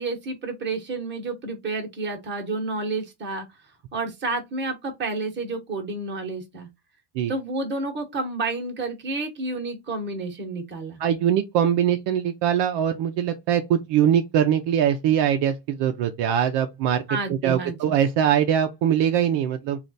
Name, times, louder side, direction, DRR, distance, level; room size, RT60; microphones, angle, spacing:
voice 1, 0.0-3.5 3.9-6.7 7.3-11.0 17.1-17.9, right 3 dB, 20° right, 1.0 m, -30 dB
voice 2, 11.0-17.0 17.3-19.8, right 9 dB, 55° right, 0.6 m, -22 dB
3.2 x 2.5 x 3.9 m
cardioid pair, 150°, 50 cm